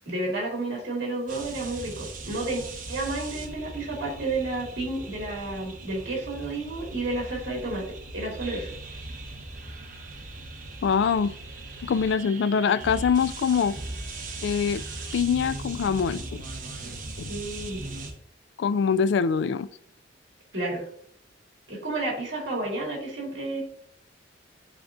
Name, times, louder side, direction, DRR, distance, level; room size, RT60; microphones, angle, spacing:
voice 1, 0.1-8.7 17.3-17.8 20.5-20.9 21.7-23.6, right 2 dB, 65° right, 2.4 m, -31 dB
sound 1, 1.3-18.1, right 2 dB, 45° right, 1.0 m, -39 dB
voice 2, 10.8-11.3 11.8-13.7 14.4-14.8 15.1-16.4 17.2-17.3 18.6-19.7, left 6 dB, 65° left, 0.3 m, -24 dB
10.5 x 3.6 x 2.5 m
head